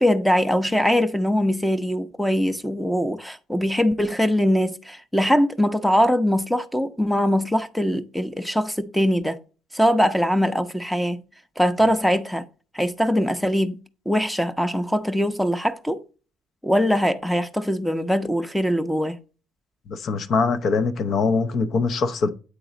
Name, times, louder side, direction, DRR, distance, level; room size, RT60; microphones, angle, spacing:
voice 1, 0.0-9.4 9.7-11.2 11.6-12.4 12.7-13.8 14.1-16.0 16.6-19.2, equal, 5° left, 0.6 m, -22 dB
voice 2, 19.9-22.3, left 4 dB, 55° left, 0.7 m, -22 dB
8.2 x 3.9 x 3.9 m
hypercardioid pair, 60°, 0 cm